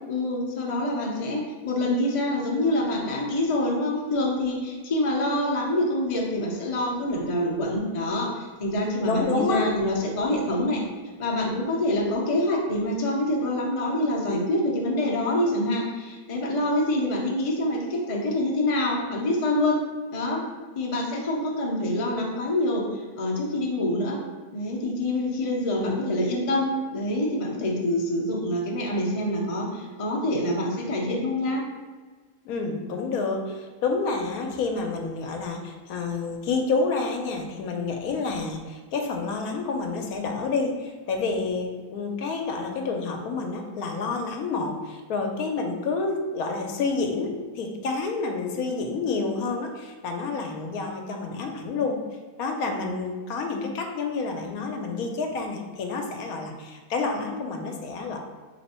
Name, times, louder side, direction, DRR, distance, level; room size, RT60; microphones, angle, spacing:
voice 1, 0.1-10.8 11.2-19.8 20.1-20.4 20.8-24.2 24.5-31.6, left 1 dB, 55° left, -2 dB, 0.3 m, -26 dB
voice 2, 9.0-9.6 25.8-26.0 32.4-52.0 52.4-58.2, left 4 dB, 75° left, 3 dB, 1.0 m, -29 dB
3.3 x 3.0 x 4.2 m, 1.4 s
omnidirectional pair, 1.6 m